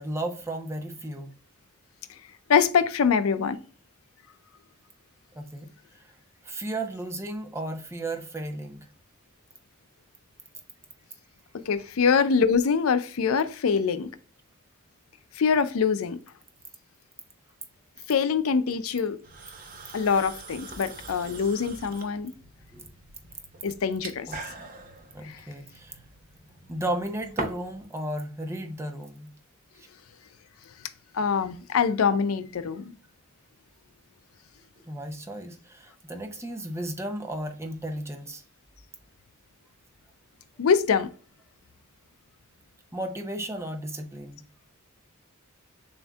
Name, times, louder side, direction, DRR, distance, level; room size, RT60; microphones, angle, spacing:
voice 1, 0.0-1.3 5.3-5.7 6.4-8.9 22.7-22.9 24.3-24.4 25.1-26.0 26.7-29.3 29.8-29.9 34.9-38.4 42.9-44.4, right 1 dB, 15° right, 0.6 m, -34 dB
voice 2, 2.5-3.6 11.7-14.1 15.4-16.2 18.1-19.2 19.9-22.3 23.6-24.3 25.2-25.4 31.1-32.9 40.6-41.1, left 6 dB, 80° left, 0.5 m, -24 dB
sound 1, 19.2-27.8, right 2 dB, 45° right, 0.8 m, -42 dB
6.9 x 2.6 x 2.3 m
head